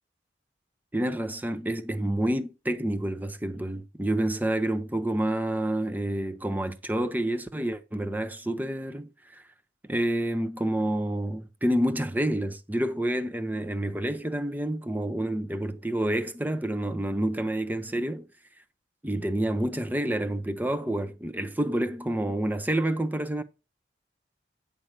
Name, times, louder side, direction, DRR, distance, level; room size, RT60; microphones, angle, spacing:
voice 1, 0.9-9.4 9.8-18.3 19.0-23.4, right 1 dB, 10° right, 0.6 m, -28 dB
8.7 x 5.1 x 4.5 m
head